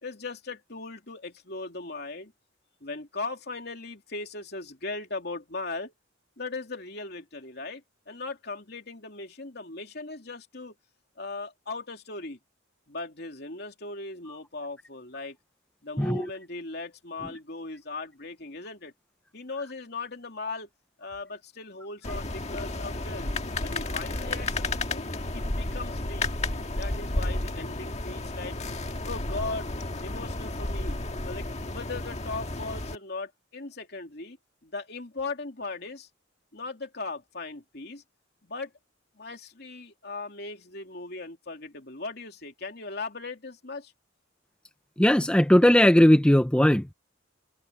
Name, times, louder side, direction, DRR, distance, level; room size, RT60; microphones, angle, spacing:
voice 1, 0.0-2.3 2.8-5.9 6.4-10.7 11.2-12.4 12.9-15.4 15.8-18.9 19.3-20.7 21.0-23.3 23.6-25.1 25.3-26.4 26.8-28.6 29.0-29.7 30.0-31.0 31.2-34.4 34.6-36.1 36.5-38.0 38.4-38.7 39.1-43.9, left 3 dB, 55° left, 3.1 m, -38 dB
sound 1, 22.0-33.0, left 2 dB, 35° left, 1.7 m, -32 dB
voice 2, 45.0-46.9, left 1 dB, 5° left, 0.5 m, -18 dB
head